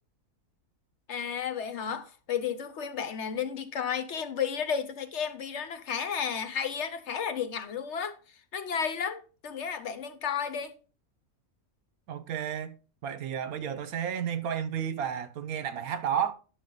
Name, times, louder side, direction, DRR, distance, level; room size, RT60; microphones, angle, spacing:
voice 1, 1.1-8.2 8.5-10.8, left 7 dB, 60° left, 1.0 m, -32 dB
voice 2, 12.1-12.8 13.0-16.3, right 8 dB, 85° right, 1.3 m, -32 dB
10.0 x 6.5 x 3.8 m
omnidirectional pair, 1.5 m